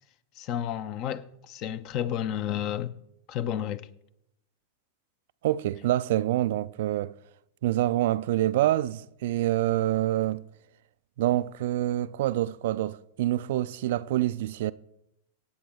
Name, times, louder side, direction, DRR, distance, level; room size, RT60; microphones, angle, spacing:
voice 1, 0.4-2.9 3.3-3.9, left 10 dB, 40° left, 0.7 m, -31 dB
voice 2, 5.4-7.1 7.6-10.4 11.2-14.7, right 14 dB, 55° right, 0.3 m, -26 dB
24.5 x 8.6 x 3.5 m
figure-of-eight pair, 90°, 0 cm